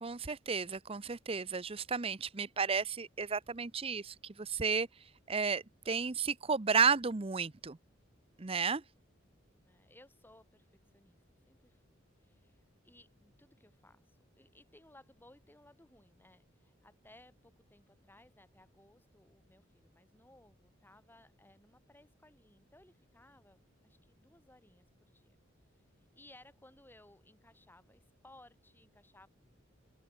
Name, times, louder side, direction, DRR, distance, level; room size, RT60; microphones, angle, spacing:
voice 1, 0.0-4.9 5.3-7.8 8.4-8.8, right 5 dB, 30° right, 0.7 m, -33 dB
voice 2, 9.6-25.4 26.0-29.3, left 1 dB, 10° left, 4.2 m, -62 dB
open air
head